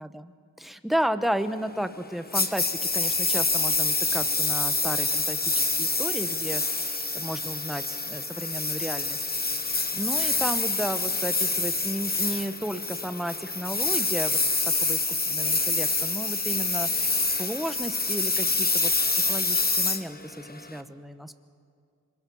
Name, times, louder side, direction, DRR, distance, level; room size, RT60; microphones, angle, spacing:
voice 1, 0.0-9.2 9.6-14.4 14.6-21.3, equal, ahead, 10 dB, 1.0 m, -33 dB
Engine, 2.3-20.8, left 3 dB, 25° left, 1.2 m, -26 dB
27.0 x 21.5 x 5.5 m, 2.3 s
cardioid pair, 65°, 37 cm